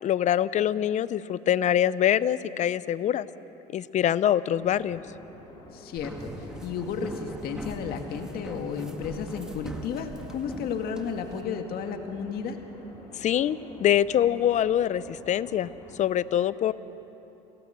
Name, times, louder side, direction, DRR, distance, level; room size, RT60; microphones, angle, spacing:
voice 1, 0.0-3.3 3.7-5.0 13.2-15.7 16.0-16.7, left 10 dB, 40° left, 17 dB, 0.6 m, -24 dB
sound 1, 4.5-16.0, left 1 dB, 20° left, 6.9 m, -48 dB
voice 2, 5.7-12.6, left 6 dB, 60° left, 5 dB, 1.9 m, -33 dB
sound 2, 6.0-11.4, equal, 5° right, 1.7 m, -41 dB
28.0 x 17.5 x 6.8 m, 3.0 s
supercardioid pair, 110°, 18 cm